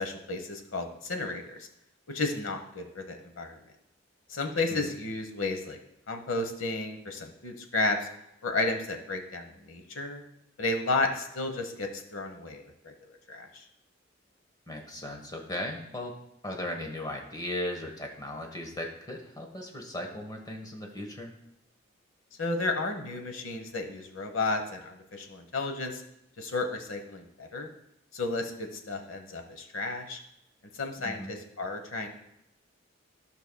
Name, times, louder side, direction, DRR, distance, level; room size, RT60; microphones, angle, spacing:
voice 1, 0.0-1.7 2.1-3.6 4.3-5.8 6.1-8.1 8.4-10.2 10.6-13.6 22.4-26.0 26.4-27.7 28.1-30.2 30.7-32.1, left 3 dB, 90° left, 5 dB, 1.1 m, -32 dB
voice 2, 14.7-16.2 16.4-21.3 31.0-31.3, left 1 dB, 20° left, 2 dB, 1.1 m, -37 dB
15.0 x 5.5 x 2.2 m, 0.82 s
head